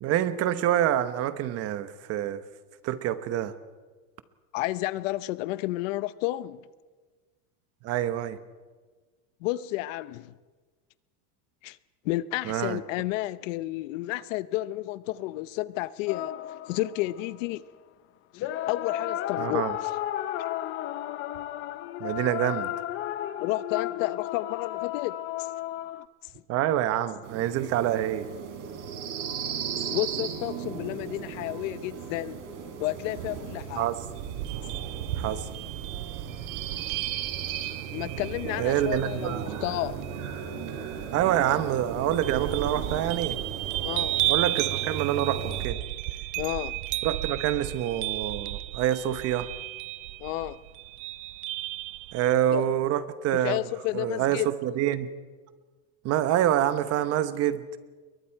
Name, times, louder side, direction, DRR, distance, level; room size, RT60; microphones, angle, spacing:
voice 1, 0.0-2.4 2.8-3.5 7.8-8.4 12.4-12.8 19.4-19.7 22.0-22.7 26.5-28.3 33.8-34.0 35.2-35.5 38.6-39.4 41.1-43.4 44.3-45.8 47.0-49.5 52.1-53.6 53.9-55.1 56.0-57.7, right 12 dB, 35° right, 1.0 m, -26 dB
voice 2, 4.5-6.6 9.4-10.3 11.6-11.8 12.0-16.3 16.7-17.7 18.3-19.9 23.4-25.5 29.8-32.4 32.8-33.9 37.9-40.0 43.8-44.3 46.4-46.8 50.2-50.6 52.5-52.6 53.4-54.5, left 17 dB, 60° left, 0.8 m, -31 dB
sound 1, 16.1-17.4 18.3-26.1, left 13 dB, 30° left, 0.5 m, -33 dB
sound 2, 27.2-45.7, right 7 dB, 85° right, 4.3 m, -36 dB
sound 3, 34.1-52.3, right 18 dB, 60° right, 0.7 m, -34 dB
28.0 x 23.0 x 4.6 m
supercardioid pair, 165°, 43 cm